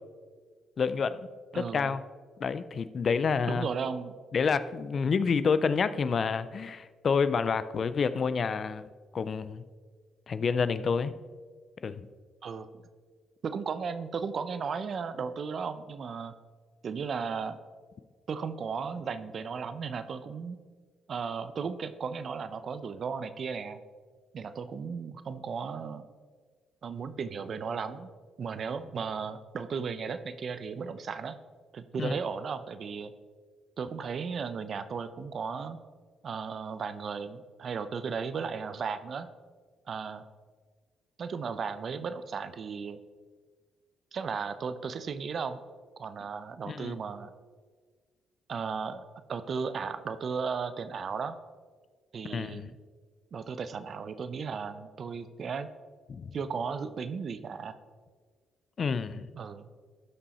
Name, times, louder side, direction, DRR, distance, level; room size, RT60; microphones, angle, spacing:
voice 1, 0.8-1.2 1.5-2.0 2.4-3.7 4.3-9.6 10.3-11.2 11.8-12.1 32.0-32.1 46.6-47.0 52.3-52.7 56.1-56.4 58.8-59.3, left 5 dB, 45° left, 14 dB, 0.4 m, -28 dB
voice 2, 1.5-1.9 3.5-4.1 12.4-12.7 13.4-16.4 16.8-17.6 18.3-20.6 21.1-23.8 24.3-26.1 26.8-28.1 28.4-31.4 31.7-33.1 33.8-35.8 36.2-39.3 39.9-40.3 41.2-43.0 44.1-45.6 46.0-47.3 48.5-49.0 49.3-51.4 52.1-52.8 53.3-55.7 56.3-57.7 59.3-59.7, right 5 dB, 50° right, 12 dB, 0.6 m, -35 dB
12.5 x 5.4 x 4.2 m, 1.5 s
cardioid pair, 90°, 0 cm